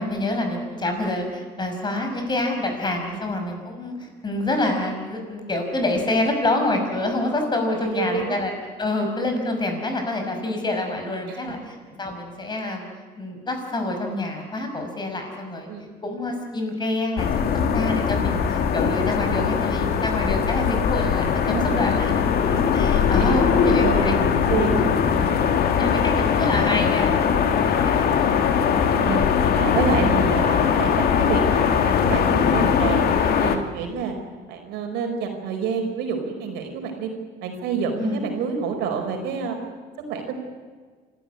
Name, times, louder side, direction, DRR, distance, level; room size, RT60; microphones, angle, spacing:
voice 1, 0.0-8.5 8.8-12.9 13.2-15.7 16.0-17.5 17.7-22.1 22.5-24.2 24.7-24.9 25.7-28.3 38.0-38.2, left 2 dB, 25° left, 4 dB, 5.9 m, -27 dB
voice 2, 7.8-8.4 11.3-11.5 15.7-15.9 21.5-21.8 22.4-22.7 23.2-25.3 27.5-27.6 28.6-29.2 29.5-33.0 33.4-34.1 34.5-37.1 37.4-39.5 40.1-40.3, right 5 dB, 90° right, 4 dB, 4.7 m, -28 dB
sound 1, 17.2-33.6, left 7 dB, 65° left, 2.1 m, -20 dB
26.5 x 14.0 x 9.8 m, 1.5 s
cardioid pair, 110°, 17 cm